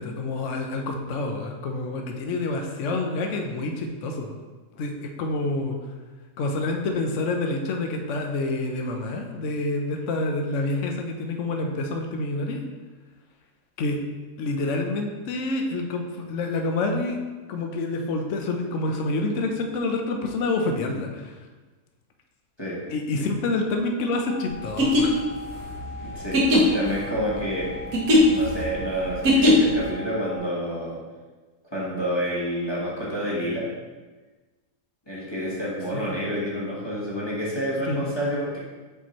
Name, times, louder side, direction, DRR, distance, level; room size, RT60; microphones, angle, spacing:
voice 1, 0.0-4.4 4.7-5.8 6.4-12.6 13.8-14.0 14.4-17.2 17.5-21.5 22.9-25.2 35.9-36.1 37.9-38.1, left 2 dB, 60° left, 3 dB, 1.0 m, -28 dB
sound 1, 24.3-30.4, left 3 dB, 90° right, 1.7 m, -40 dB
sound 2, 24.6-29.9, equal, 75° right, 1.5 m, -21 dB
voice 2, 26.0-27.7 28.2-31.0 31.7-33.7 35.1-38.6, equal, 20° left, -7 dB, 1.2 m, -29 dB
7.1 x 4.3 x 3.0 m, 1.3 s
omnidirectional pair, 1.5 m